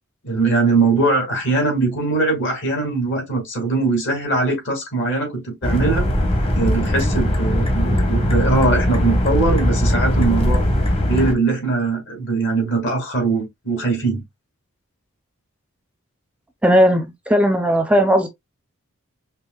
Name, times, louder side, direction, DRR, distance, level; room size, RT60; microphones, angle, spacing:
voice 1, 0.2-6.1 6.5-10.6 11.1-14.2, right 3 dB, 60° left, 2.4 m, -21 dB
sound 1, 5.6-11.3, left 1 dB, 25° left, 1.1 m, -19 dB
voice 2, 16.6-18.3, equal, 5° right, 0.5 m, -16 dB
5.4 x 3.0 x 2.3 m
head